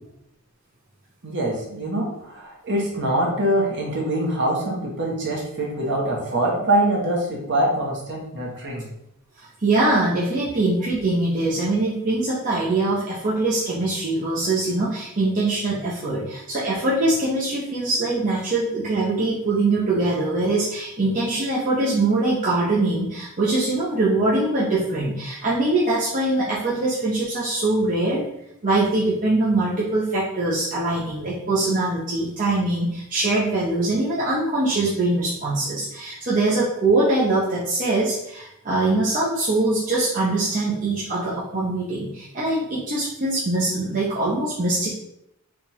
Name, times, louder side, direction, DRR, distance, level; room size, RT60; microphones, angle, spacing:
voice 1, 1.2-8.9, right 1 dB, 55° right, -2 dB, 1.2 m, -24 dB
voice 2, 9.4-28.2 28.6-44.9, right 2 dB, 35° right, -7 dB, 0.8 m, -23 dB
3.7 x 2.5 x 4.4 m, 0.80 s
head